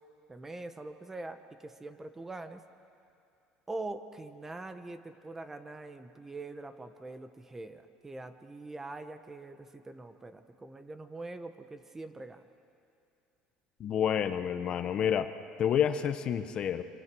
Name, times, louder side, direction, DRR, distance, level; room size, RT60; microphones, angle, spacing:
voice 1, 0.3-2.6 3.7-12.4, right 2 dB, 15° right, 9 dB, 1.1 m, -43 dB
voice 2, 13.8-15.3 15.6-16.8, left 9 dB, 45° left, 10 dB, 1.0 m, -29 dB
26.5 x 24.5 x 6.3 m, 2.6 s
cardioid pair, 130°, 2 cm